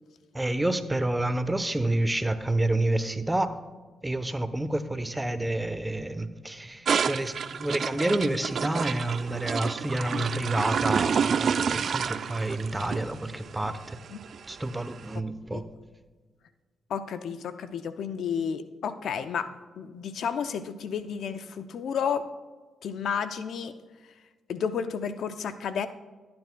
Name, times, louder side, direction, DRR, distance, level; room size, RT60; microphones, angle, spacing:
voice 1, 0.3-3.6 4.0-14.0 14.5-15.6, right 1 dB, 15° right, 11 dB, 0.8 m, -29 dB
sound 1, 6.9-15.1, right 7 dB, 60° right, 0.3 m, -29 dB
voice 2, 16.9-19.5 19.8-22.3 22.8-23.8 24.5-25.9, left 7 dB, 75° left, 11 dB, 0.5 m, -31 dB
15.0 x 9.5 x 2.3 m, 1.4 s
supercardioid pair, 55°, 0 cm